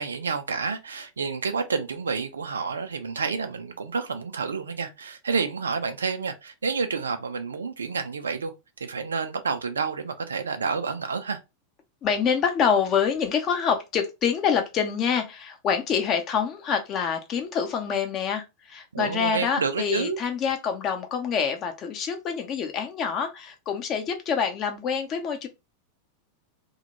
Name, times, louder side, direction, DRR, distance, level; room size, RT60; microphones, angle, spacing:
voice 1, 0.0-8.5 8.8-11.4 18.9-20.2, right 5 dB, 70° right, 0.4 m, -29 dB
voice 2, 12.0-25.5, left 7 dB, 30° left, 0.6 m, -26 dB
2.1 x 2.1 x 2.8 m
figure-of-eight pair, 90°, 0 cm